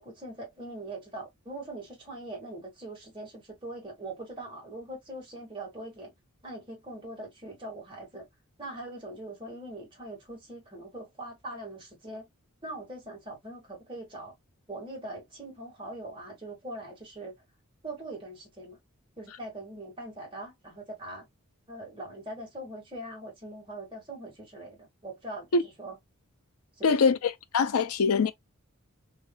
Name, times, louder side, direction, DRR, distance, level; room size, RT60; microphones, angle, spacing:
voice 1, 0.0-6.1 6.4-8.2 8.6-12.3 12.6-14.3 14.7-17.3 17.8-18.8 19.2-21.3 21.7-26.0 26.8-27.2, right 1 dB, 25° right, 1.9 m, -42 dB
voice 2, 26.8-28.3, left 5 dB, 90° left, 0.5 m, -23 dB
3.4 x 3.2 x 2.2 m
head